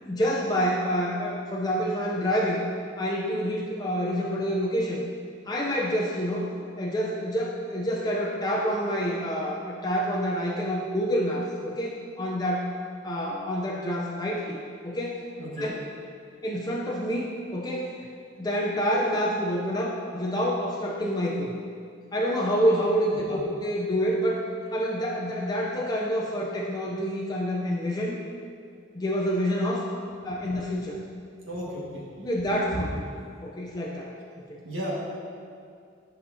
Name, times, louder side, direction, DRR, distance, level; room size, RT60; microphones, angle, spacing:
voice 1, 0.0-2.6 3.0-5.0 5.5-6.5 6.8-12.7 13.0-15.2 15.6-15.7 16.4-17.9 18.4-21.5 22.1-24.4 24.7-28.2 28.9-29.9 30.2-31.0 32.2-32.9 33.4-34.1 34.5-34.6, equal, 20° left, -3 dB, 0.5 m, -27 dB
voice 2, 15.4-15.7 23.3-23.4 31.4-32.0 32.7-32.9 34.6-34.9, equal, 80° right, -5 dB, 1.7 m, -34 dB
10.0 x 5.4 x 2.7 m, 2.3 s
head